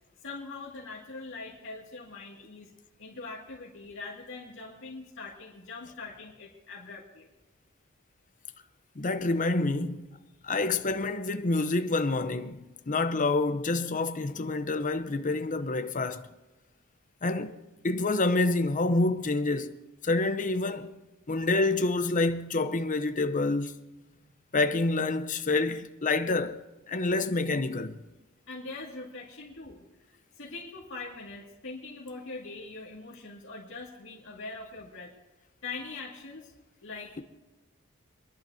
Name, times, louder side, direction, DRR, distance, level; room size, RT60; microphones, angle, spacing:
voice 1, 0.2-2.7 3.0-7.3 10.4-10.5 24.1-24.3 28.5-35.1 35.6-36.5 36.8-37.1, left 3 dB, 65° left, 2.3 m, -42 dB
voice 2, 9.0-10.1 10.4-16.3 17.2-17.6 17.8-19.7 20.0-21.0 21.3-23.7 24.5-26.6 26.9-28.0, left 2 dB, 40° left, 0.8 m, -27 dB
26.0 x 11.5 x 2.8 m
head